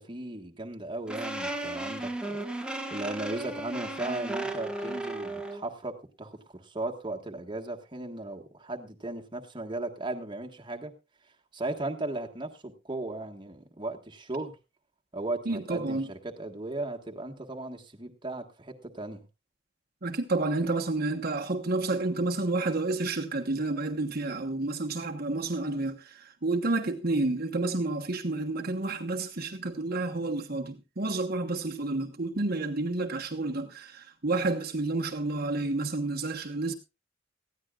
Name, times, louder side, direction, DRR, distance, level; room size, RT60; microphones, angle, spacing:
voice 1, 0.0-10.9 11.5-14.5 15.1-19.2, right 2 dB, 25° right, 1.5 m, -36 dB
sound 1, 1.1-5.6, right 2 dB, 5° right, 1.3 m, -35 dB
voice 2, 15.4-16.1 20.0-36.7, right 2 dB, 50° right, 1.2 m, -30 dB
19.0 x 14.5 x 2.4 m
head